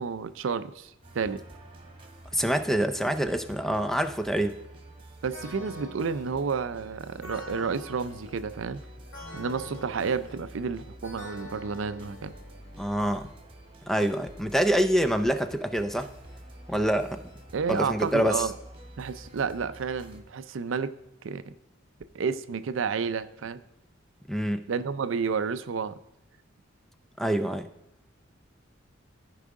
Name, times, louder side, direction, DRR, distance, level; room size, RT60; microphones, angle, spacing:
voice 1, 0.0-1.4 5.2-8.8 9.3-12.3 17.5-18.5 19.0-21.0 21.2-21.5 22.1-23.6 24.7-26.0, right 5 dB, 75° right, 13 dB, 0.5 m, -31 dB
sound 1, 1.0-20.2, right 1 dB, 30° right, 1.3 m, -48 dB
voice 2, 2.3-4.5 12.8-13.3 13.9-16.1 16.7-17.3 17.7-18.5 24.3-24.7 27.2-27.7, equal, ahead, 9 dB, 0.4 m, -26 dB
sound 2, 5.3-13.0, left 1 dB, 70° left, 1.9 m, -46 dB
14.5 x 4.8 x 3.7 m, 0.88 s
head